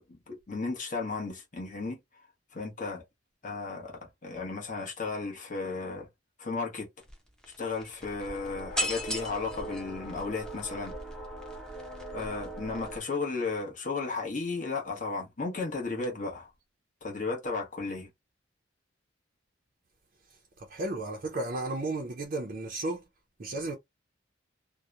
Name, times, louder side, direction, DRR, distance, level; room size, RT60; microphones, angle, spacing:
voice 1, 0.1-2.0 2.5-3.0 3.4-6.1 6.4-6.9 7.6-11.0 12.1-16.5 17.0-18.1, left 3 dB, 45° left, 0.9 m, -34 dB
sound 1, 7.0-7.1 7.4-13.0, equal, 5° left, 0.6 m, -37 dB
voice 2, 20.7-23.0 23.4-23.7, right 2 dB, 45° right, 0.5 m, -33 dB
2.8 x 2.0 x 2.3 m
head